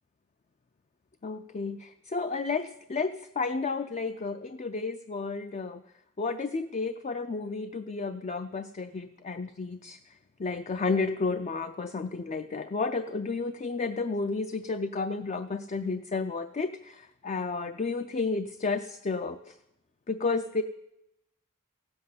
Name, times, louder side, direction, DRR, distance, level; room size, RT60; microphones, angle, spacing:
voice 1, 1.2-5.8 6.2-19.6 20.1-20.6, left 4 dB, 35° left, 8 dB, 0.4 m, -32 dB
15.5 x 8.0 x 9.4 m, 0.87 s
head